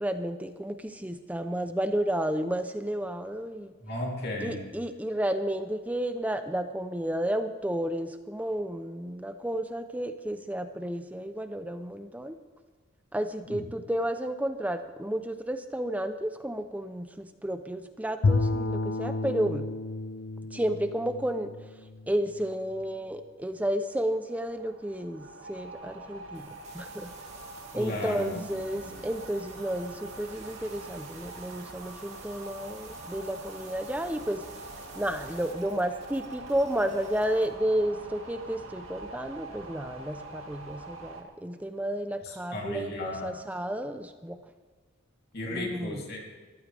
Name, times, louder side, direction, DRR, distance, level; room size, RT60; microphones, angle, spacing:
voice 1, 0.0-3.7 4.4-12.4 13.1-19.7 20.5-21.5 22.1-26.5 26.7-27.1 27.7-34.4 35.0-44.4 45.5-46.0, right 1 dB, 5° right, 9 dB, 0.6 m, -32 dB
voice 2, 3.8-4.6 13.5-13.6 27.7-29.0 42.2-43.4 45.3-46.2, left 1 dB, 50° left, -1 dB, 3.2 m, -35 dB
Bowed string instrument, 18.2-22.5, left 3 dB, 75° left, 0.5 m, -30 dB
sound 1, 23.9-41.2, right 2 dB, 85° right, 2.1 m, -45 dB
sound 2, 26.3-37.5, right 5 dB, 35° right, 2.7 m, -52 dB
21.5 x 14.0 x 3.4 m, 1.4 s
head